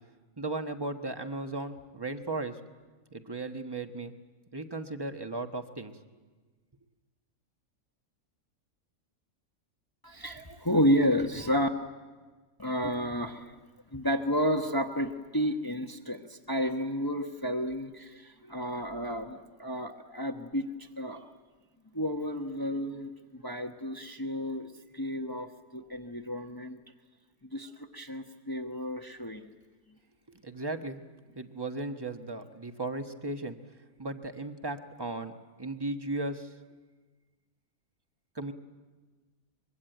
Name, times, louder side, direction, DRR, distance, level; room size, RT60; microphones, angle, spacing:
voice 1, 0.4-2.6 3.1-4.1 4.5-5.9 30.3-31.0 31.3-33.6 34.0-35.3 35.6-36.5 38.3-38.5, right 2 dB, 20° right, 6 dB, 1.2 m, -36 dB
voice 2, 10.0-11.7 12.6-13.5 13.9-21.3 21.9-26.8 27.5-29.4, equal, 15° left, 4 dB, 1.0 m, -31 dB
24.5 x 22.5 x 9.2 m, 1.4 s
omnidirectional pair, 1.5 m